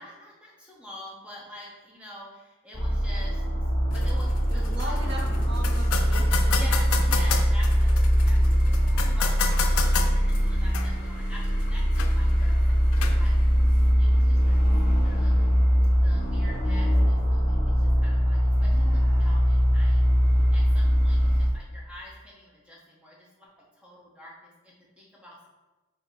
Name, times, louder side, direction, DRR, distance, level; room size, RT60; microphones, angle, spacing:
voice 1, 0.0-3.4 3.9-5.0 6.1-6.2 6.5-13.4 13.6-14.8 15.0-15.5 16.0-23.5 23.8-25.4, equal, 5° right, -4 dB, 0.8 m, -47 dB
Nuclear Power Plant Amb, 2.7-21.5, equal, 35° left, 0.9 m, -22 dB
sound 1, 3.9-13.9, left 6 dB, 85° left, 0.4 m, -34 dB
voice 2, 4.5-6.5 8.7-9.6 15.8-16.2 18.5-19.4, right 1 dB, 50° right, -1 dB, 0.7 m, -41 dB
4.0 x 2.8 x 4.6 m, 1.1 s
head